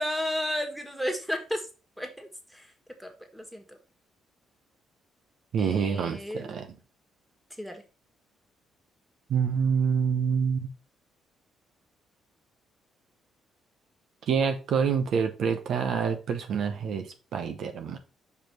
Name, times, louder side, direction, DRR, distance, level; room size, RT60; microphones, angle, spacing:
voice 1, 0.0-1.6 2.0-2.7 3.0-3.8 5.6-6.5 7.6-7.8, left 1 dB, ahead, 1.7 m, -33 dB
voice 2, 5.5-6.7 9.3-10.7 14.3-18.0, right 6 dB, 70° right, 0.8 m, -27 dB
5.1 x 4.8 x 4.5 m
supercardioid pair, 60°, 0 cm